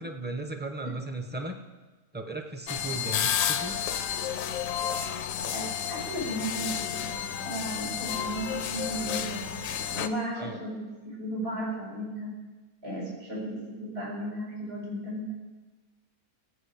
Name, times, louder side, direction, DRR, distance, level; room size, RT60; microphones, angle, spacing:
voice 1, 0.0-1.6 2.1-3.8 10.3-10.6, right 1 dB, 10° right, 5 dB, 0.6 m, -36 dB
sound 1, 2.7-10.1, left 9 dB, 70° left, 0.9 m, -31 dB
voice 2, 5.5-9.5 9.9-12.3 12.8-15.3, right 1 dB, 90° right, -5 dB, 5.5 m, -35 dB
16.5 x 8.4 x 5.1 m, 1.2 s
omnidirectional pair, 1.6 m